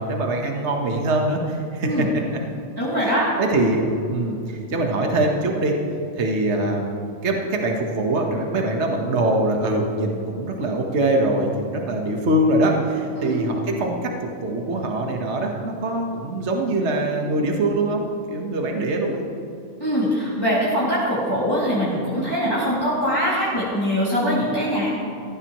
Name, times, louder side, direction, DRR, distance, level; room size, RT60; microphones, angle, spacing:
voice 1, 0.0-2.4 3.0-3.1 3.4-5.8 6.2-18.0 18.3-19.2, right 2 dB, 55° right, 1 dB, 1.6 m, -23 dB
voice 2, 2.8-3.3 13.1-13.4 19.8-24.9, equal, 15° left, -10 dB, 2.5 m, -22 dB
18.5 x 14.5 x 3.1 m, 2.5 s
omnidirectional pair, 1.4 m